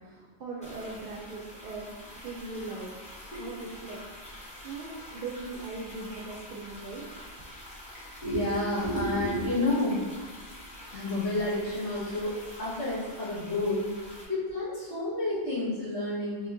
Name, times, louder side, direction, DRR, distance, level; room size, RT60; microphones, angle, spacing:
voice 1, 0.0-2.9 3.4-7.1, right 3 dB, 60° right, -2 dB, 0.6 m, -40 dB
sound 1, 0.6-14.2, left 1 dB, 10° left, 0.6 m, -46 dB
voice 2, 8.2-10.0 10.9-13.9 14.3-16.5, left 1 dB, 70° left, -10 dB, 1.6 m, -30 dB
3.6 x 3.1 x 2.5 m, 1.3 s
omnidirectional pair, 1.2 m